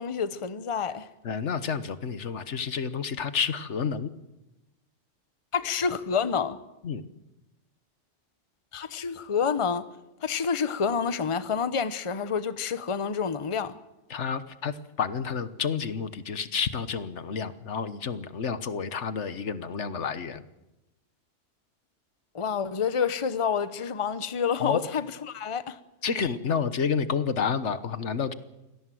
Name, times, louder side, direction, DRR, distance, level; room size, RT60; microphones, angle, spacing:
voice 1, 0.0-1.1 5.5-6.6 8.7-9.9 10.2-13.8 22.3-25.8, left 6 dB, 30° left, 0.9 m, -28 dB
voice 2, 1.2-4.1 6.8-7.0 14.1-20.4 24.6-24.8 26.0-28.3, left 6 dB, 80° left, 1.5 m, -30 dB
24.5 x 17.5 x 7.7 m
omnidirectional pair, 1.2 m